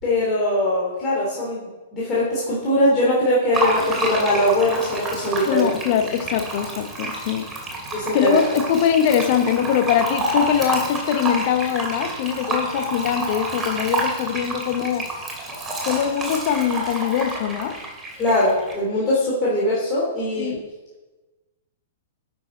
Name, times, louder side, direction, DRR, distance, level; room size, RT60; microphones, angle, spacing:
voice 1, 0.0-5.7 7.9-8.4 12.5-12.6 18.2-20.6, left 1 dB, 25° left, -6 dB, 2.9 m, -21 dB
Fill (with liquid), 3.5-18.7, right 2 dB, 15° right, 2.7 m, -28 dB
voice 2, 5.5-7.5 8.1-15.1 15.8-17.8 20.4-20.6, left 9 dB, 45° left, 8 dB, 1.0 m, -22 dB
11.0 x 6.4 x 4.3 m, 1.2 s
figure-of-eight pair, 105°, 0 cm